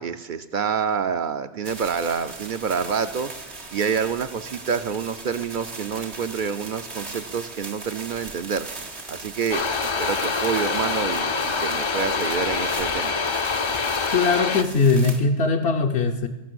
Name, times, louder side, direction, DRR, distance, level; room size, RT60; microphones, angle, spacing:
voice 1, 0.0-8.7 9.1-13.2, right 6 dB, 60° right, 10 dB, 0.6 m, -28 dB
sound 1, 1.6-15.2, right 3 dB, 80° right, 2.0 m, -38 dB
sound 2, 9.5-14.6, left 4 dB, 40° left, 0.5 m, -25 dB
voice 2, 14.1-16.3, left 4 dB, 70° left, 2 dB, 1.0 m, -20 dB
14.5 x 6.1 x 7.6 m, 1.1 s
omnidirectional pair, 1.1 m